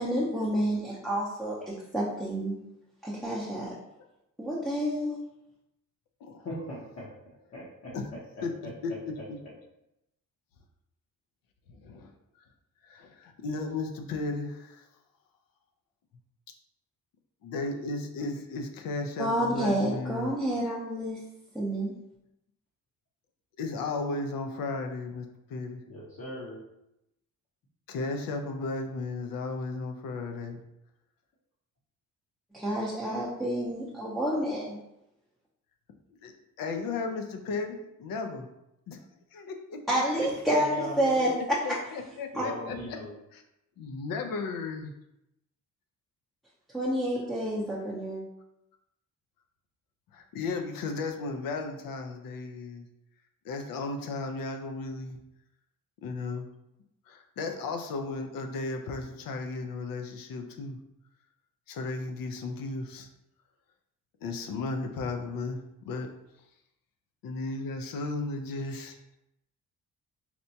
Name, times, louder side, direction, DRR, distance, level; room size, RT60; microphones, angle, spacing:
voice 1, 0.0-2.6 3.0-3.7 4.4-5.2 19.2-21.2 21.5-21.9 32.5-34.8 39.9-41.6 42.3-42.5 46.7-48.2, right 1 dB, ahead, -7 dB, 0.6 m, -29 dB
voice 2, 6.4-7.0 7.5-7.9 8.6-8.7 25.9-26.6 40.5-41.3 42.3-43.1, equal, 45° left, -6 dB, 0.8 m, -39 dB
voice 3, 8.4-9.4 11.7-12.1 12.4-12.5 12.8-14.9 17.4-20.3 23.6-25.8 27.9-30.6 36.2-38.5 38.9-39.0 39.3-40.3 41.6-43.0 43.3-43.4 43.8-44.9 50.1-52.9 53.4-55.2 56.0-56.5 57.1-60.8 61.7-63.1 64.2-65.6 65.9-66.1 67.2-69.0, left 3 dB, 80° left, 5 dB, 0.6 m, -35 dB
4.2 x 2.2 x 2.7 m, 0.87 s
cardioid pair, 115°, 34 cm